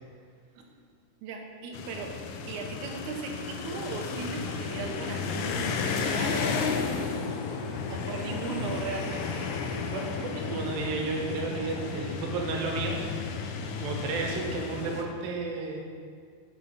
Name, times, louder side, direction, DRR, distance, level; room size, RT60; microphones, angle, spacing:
voice 1, 1.2-2.2 2.5-9.5, right 4 dB, 75° right, 1 dB, 2.1 m, -38 dB
sound 1, 1.7-15.0, left 5 dB, 80° left, 2.0 m, -33 dB
voice 2, 9.9-13.0 13.8-15.8, right 3 dB, 90° right, 1 dB, 2.7 m, -32 dB
6.9 x 6.2 x 5.0 m, 2.1 s
omnidirectional pair, 4.0 m